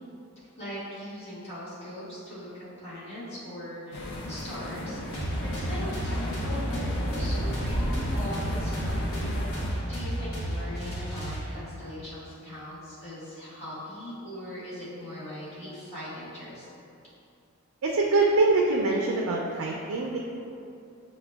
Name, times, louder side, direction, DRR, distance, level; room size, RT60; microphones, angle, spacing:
voice 1, 0.6-9.4 9.9-16.7, equal, 30° left, -12 dB, 1.2 m, -40 dB
sound 1, 3.9-9.7, equal, 55° left, 0.5 m, -33 dB
sound 2, 5.1-11.8, equal, 85° left, 1.0 m, -32 dB
voice 2, 17.8-20.2, right 3 dB, 80° right, -1 dB, 0.3 m, -24 dB
5.7 x 2.1 x 2.2 m, 2.6 s
head